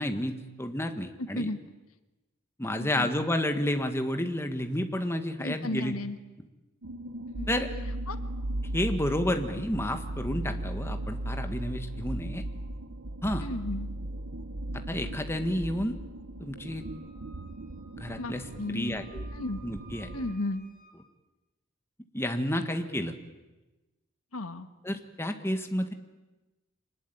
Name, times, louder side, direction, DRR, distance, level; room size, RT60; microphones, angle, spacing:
voice 1, 0.0-1.5 2.6-5.9 7.5-7.7 8.7-12.4 13.2-13.5 14.9-16.0 16.4-16.8 17.9-19.2 19.6-20.1 22.1-23.1 24.8-25.9, left 1 dB, 10° left, 6 dB, 1.5 m, -30 dB
voice 2, 1.2-1.6 2.7-3.1 5.4-6.2 7.3-7.5 8.1-8.2 13.4-13.9 18.2-19.0 19.3-19.6 20.1-20.6 24.3-24.7, left 2 dB, 90° left, 10 dB, 1.6 m, -34 dB
sound 1, 6.8-20.3, right 1 dB, 65° right, 1.1 m, -37 dB
Wind instrument woodwind instrument, 16.7-21.0, right 3 dB, 45° right, 7.1 m, -57 dB
25.5 x 20.0 x 9.3 m, 1.1 s
head